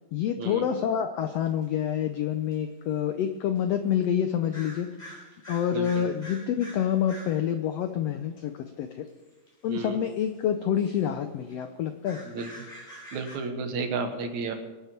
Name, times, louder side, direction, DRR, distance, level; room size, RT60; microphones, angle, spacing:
voice 1, 0.1-5.2 5.5-9.0 9.6-12.2, left 9 dB, 85° left, 8 dB, 1.4 m, -27 dB
sound 1, 1.6-1.7 2.5-2.6 3.5-3.6 4.5-7.4 9.1-9.5 10.1-10.3 10.6-11.0 11.5-11.6 11.9-13.4, equal, 10° left, 4.1 m, -46 dB
voice 2, 5.7-6.1 9.7-10.0 12.2-12.7 13.1-14.5, right 4 dB, 65° right, 6 dB, 2.5 m, -32 dB
24.0 x 9.2 x 4.5 m, 1.3 s
omnidirectional pair, 3.8 m